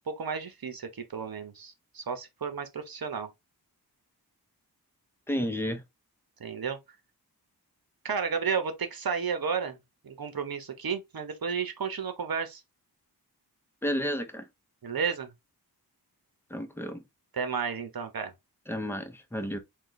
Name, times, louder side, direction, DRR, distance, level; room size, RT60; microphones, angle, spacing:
voice 1, 0.1-3.3 6.4-6.8 8.0-9.8 10.0-12.6 14.8-15.3 17.3-18.3, right 6 dB, 65° right, 1.0 m, -32 dB
voice 2, 5.3-5.8 13.8-14.5 16.5-17.0 18.7-19.6, equal, 5° left, 0.8 m, -31 dB
3.8 x 2.4 x 3.9 m
wide cardioid pair, 90°, 39 cm